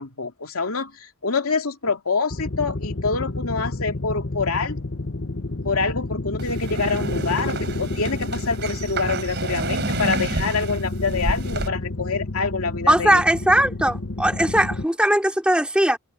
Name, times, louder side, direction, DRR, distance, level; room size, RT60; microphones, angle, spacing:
voice 1, 0.0-4.8 5.6-13.2, left 4 dB, 85° left, 2.5 m, -26 dB
sound 1, 2.3-14.8, left 2 dB, 60° left, 1.3 m, -30 dB
sound 2, 6.4-11.7, right 2 dB, 50° right, 4.5 m, -29 dB
voice 2, 12.9-16.0, right 1 dB, 5° right, 3.4 m, -19 dB
head